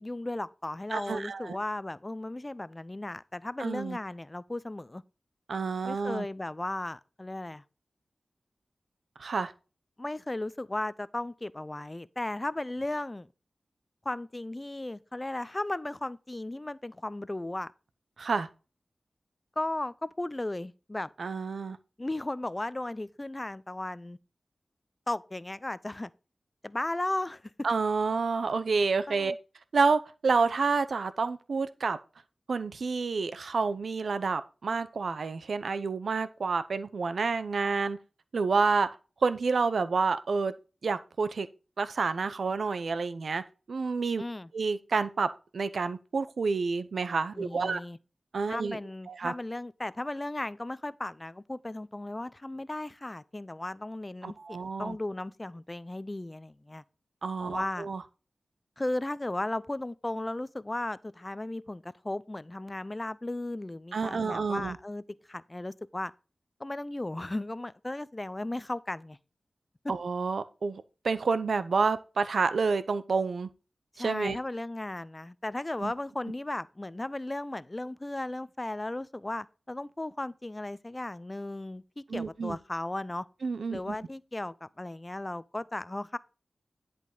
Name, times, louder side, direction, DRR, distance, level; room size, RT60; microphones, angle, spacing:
voice 1, 0.0-5.0 5.8-7.6 10.0-13.3 14.0-17.7 19.6-21.1 22.0-24.2 25.1-26.1 26.6-27.4 29.1-29.4 44.2-44.5 47.3-48.0 48.5-56.8 57.4-57.9 58.8-65.0 65.3-66.1 66.6-69.2 73.9-83.3 83.7-86.2, left 1 dB, 30° left, 0.5 m, -35 dB
voice 2, 0.9-1.6 3.6-4.0 5.5-6.3 9.2-9.5 18.2-18.5 21.2-21.8 27.6-29.3 29.7-32.0 32.5-38.0 38.3-38.9 39.2-40.5 40.8-41.5 41.8-43.4 43.7-44.2 44.5-47.8 48.3-48.8 49.1-49.3 54.2-55.0 57.2-58.0 63.9-64.8 69.9-73.5 74.0-74.4 75.8-75.9 82.1-82.6 83.4-83.9, right 4 dB, 80° right, 0.6 m, -29 dB
11.0 x 5.1 x 3.8 m
cardioid pair, 45°, 0 cm